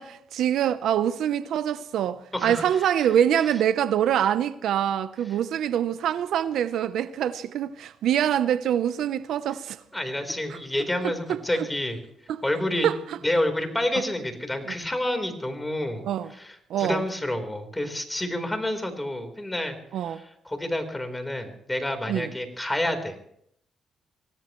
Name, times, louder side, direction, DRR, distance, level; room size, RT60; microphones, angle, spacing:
voice 1, 0.0-9.8 10.5-10.6 11.0-11.4 12.3-12.4 12.8-13.2 16.0-16.3 16.7-17.0 19.9-20.2 22.1-22.3, right 10 dB, 75° right, 0.8 m, -25 dB
voice 2, 2.3-3.1 9.9-12.0 12.4-12.9 13.2-16.0 16.3-19.8 20.0-23.2, left 1 dB, 10° left, 4.1 m, -29 dB
25.0 x 18.0 x 3.2 m
cardioid pair, 90°, 0 cm